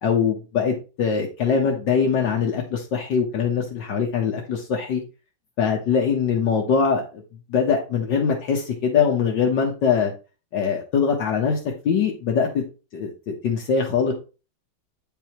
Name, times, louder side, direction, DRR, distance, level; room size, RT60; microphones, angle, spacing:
voice 1, 0.0-5.0 5.6-7.2 7.5-10.1 10.5-11.6 11.9-12.6 12.9-14.1, left 6 dB, 70° left, 1 dB, 1.8 m, -22 dB
9.3 x 5.5 x 3.0 m, 0.32 s
omnidirectional pair, 2.0 m